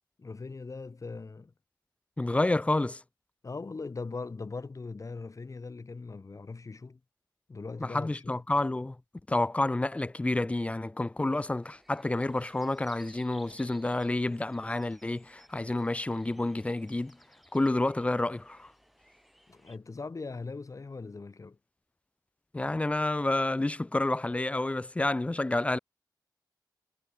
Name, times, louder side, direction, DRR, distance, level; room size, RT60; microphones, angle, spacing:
voice 1, 0.2-1.5 3.4-7.0 7.5-8.4 19.5-21.6, left 4 dB, 45° left, 1.7 m, -40 dB
voice 2, 2.2-3.0 7.8-9.0 9.3-17.2 17.5-18.7 22.5-25.8, left 2 dB, 15° left, 0.3 m, -29 dB
sound 1, 11.6-19.8, equal, ahead, 7.4 m, -60 dB
cardioid pair, 65°, 8 cm